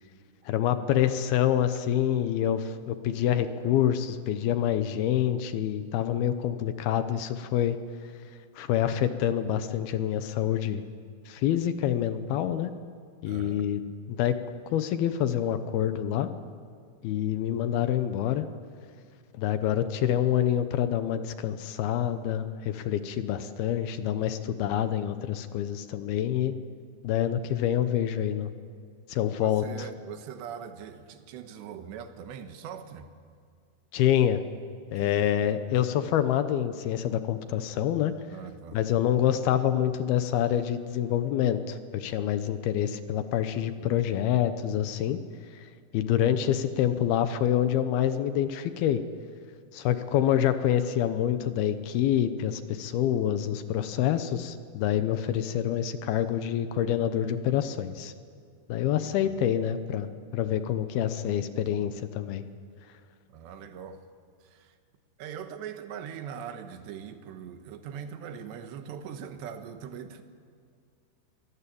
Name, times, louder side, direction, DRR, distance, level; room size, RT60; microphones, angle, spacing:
voice 1, 0.5-7.8 8.6-10.8 11.3-12.7 13.2-14.4 14.7-16.3 17.0-18.5 19.4-26.6 27.0-28.5 29.1-29.9 33.9-34.4 34.9-38.1 38.7-45.2 45.9-49.0 49.7-58.1 58.7-60.1 60.3-62.4, left 10 dB, 75° left, 2.6 m, -27 dB
voice 2, 13.3-13.7 29.3-33.1 35.0-35.3 38.3-38.8 59.0-59.4 63.3-64.1 64.4-64.8 65.2-70.2, right 8 dB, 85° right, 3.5 m, -41 dB
24.0 x 18.5 x 8.6 m
omnidirectional pair, 4.9 m